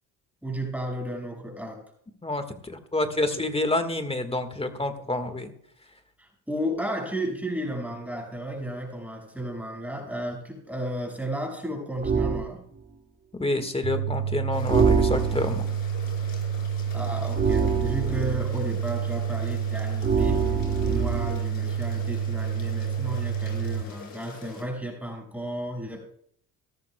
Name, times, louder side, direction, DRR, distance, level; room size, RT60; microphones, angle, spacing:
voice 1, 0.4-1.8 6.2-12.6 16.9-20.4 20.8-26.0, right 1 dB, 5° right, 0 dB, 5.6 m, -33 dB
voice 2, 2.2-5.5 13.4-15.7, left 2 dB, 15° left, 8 dB, 1.6 m, -28 dB
sound 1, 12.0-12.5 14.7-15.6 17.4-18.5 20.0-21.4, right 5 dB, 25° right, 2.5 m, -24 dB
sound 2, 13.8-23.8, right 8 dB, 65° right, 1.2 m, -29 dB
sound 3, 14.5-24.6, left 6 dB, 55° left, 4.7 m, -44 dB
17.0 x 13.5 x 2.3 m, 0.66 s
supercardioid pair, 85°, 41 cm